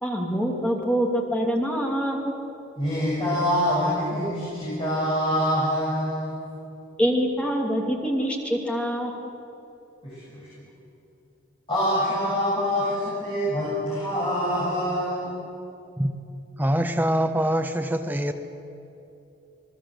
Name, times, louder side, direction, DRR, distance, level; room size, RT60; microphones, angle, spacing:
voice 1, 0.0-2.3 7.0-9.3, equal, 5° left, 0 dB, 2.7 m, -25 dB
voice 2, 2.8-6.4 10.0-10.5 11.7-15.4, equal, 25° left, -7 dB, 7.3 m, -25 dB
voice 3, 16.6-18.3, right 1 dB, 10° right, 6 dB, 1.1 m, -24 dB
28.0 x 19.5 x 8.0 m, 2.8 s
head